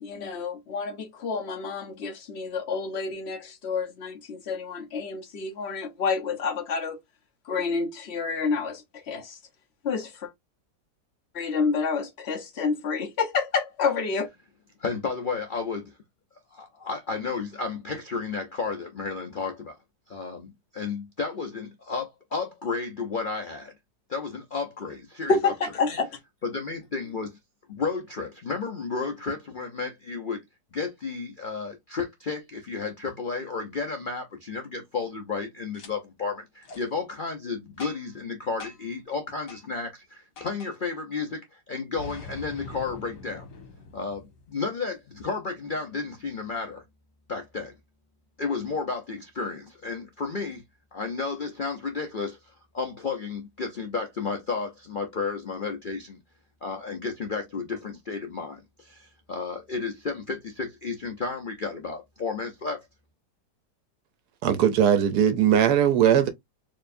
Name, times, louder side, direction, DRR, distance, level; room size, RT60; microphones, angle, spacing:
voice 1, 0.0-7.0 7.4-9.4 9.8-10.3 11.3-14.3 25.3-26.2, left 5 dB, 45° left, 0.9 m, -29 dB
voice 2, 14.8-16.0 16.5-19.8 20.1-23.7 24.1-25.5 26.4-27.4 27.7-30.4 30.7-43.5 43.9-46.8 47.3-47.7 48.4-50.6 50.9-56.2 56.6-62.9, left 4 dB, 90° left, 0.4 m, -32 dB
Boom, 35.7-35.9 36.6-36.8 37.8-38.2 38.6-39.0 39.5-39.6 40.4-40.7 42.0-44.7, left 4 dB, 70° left, 1.8 m, -43 dB
voice 3, 64.4-66.3, right 9 dB, 70° right, 1.1 m, -20 dB
4.6 x 3.0 x 2.5 m
omnidirectional pair, 1.9 m